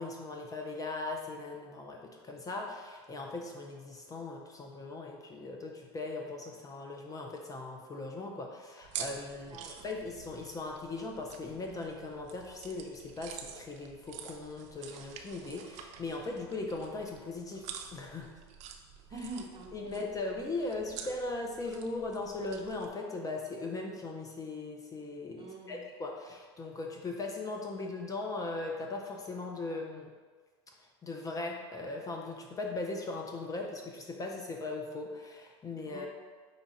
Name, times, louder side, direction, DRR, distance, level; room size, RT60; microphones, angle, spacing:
voice 1, 0.0-17.6 17.9-18.3 19.1-19.3 19.7-30.1 30.8-36.1, left 3 dB, 25° left, 1 dB, 0.6 m, -39 dB
Eating popcorn, 8.8-22.9, right 8 dB, 55° right, 0.5 m, -48 dB
voice 2, 9.4-9.9 19.1-20.1 25.4-25.9 35.8-36.1, right 3 dB, 35° right, -1 dB, 0.9 m, -45 dB
4.9 x 2.4 x 4.1 m, 1.4 s
hypercardioid pair, 95°, 14 cm